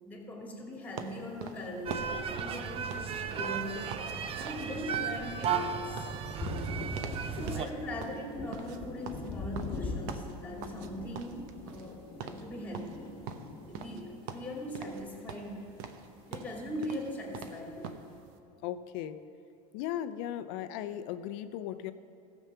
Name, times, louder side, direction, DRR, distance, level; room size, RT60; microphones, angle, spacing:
voice 1, 0.0-3.8 4.3-6.1 7.3-13.2 13.7-15.7 16.3-18.0, left 1 dB, 10° left, -1 dB, 2.5 m, -40 dB
sound 1, 1.0-4.1 4.4-4.7 4.9-7.2 7.5-7.7 8.0-10.9 11.1-11.9 12.2-12.4 12.7-14.0 14.3-15.0 15.3-18.1, right 7 dB, 60° right, 0.9 m, -43 dB
sound 2, 1.9-7.7, right 7 dB, 30° right, 0.6 m, -35 dB
Thunder, 5.9-15.7 16.0-17.2, left 3 dB, 30° left, 1.4 m, -43 dB
voice 2, 18.6-19.2 19.7-21.9, left 11 dB, 65° left, 11 dB, 0.6 m, -37 dB
14.5 x 7.2 x 5.6 m, 2.6 s
supercardioid pair, 115°, 18 cm